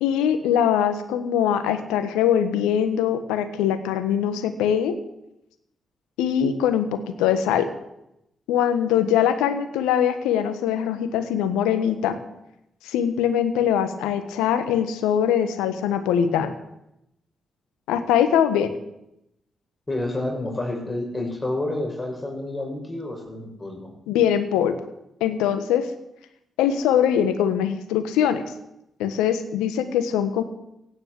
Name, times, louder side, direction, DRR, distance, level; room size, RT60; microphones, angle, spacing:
voice 1, 0.0-5.0 6.2-7.7 8.5-12.2 12.8-16.5 17.9-18.7 24.1-24.8 25.2-25.9 26.6-28.4 29.0-30.4, left 9 dB, 85° left, 11 dB, 1.3 m, -22 dB
voice 2, 19.9-23.9, left 2 dB, 25° left, 1 dB, 5.8 m, -29 dB
16.0 x 9.9 x 8.3 m, 0.85 s
hypercardioid pair, 40°, 0 cm